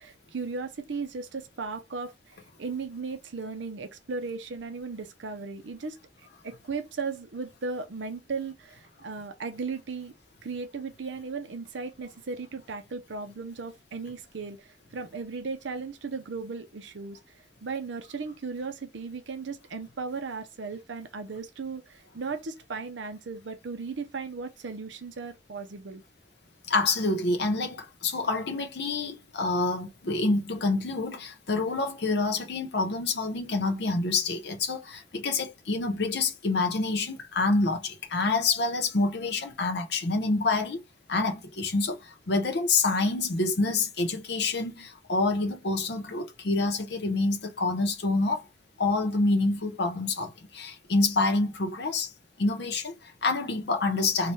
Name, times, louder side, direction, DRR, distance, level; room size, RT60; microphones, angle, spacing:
voice 1, 0.0-10.1 10.4-26.0, right 4 dB, 75° right, 0.6 m, -36 dB
voice 2, 26.7-40.8 41.1-48.4 48.8-52.1 52.4-54.3, left 3 dB, 60° left, 0.7 m, -27 dB
3.2 x 2.2 x 4.1 m
head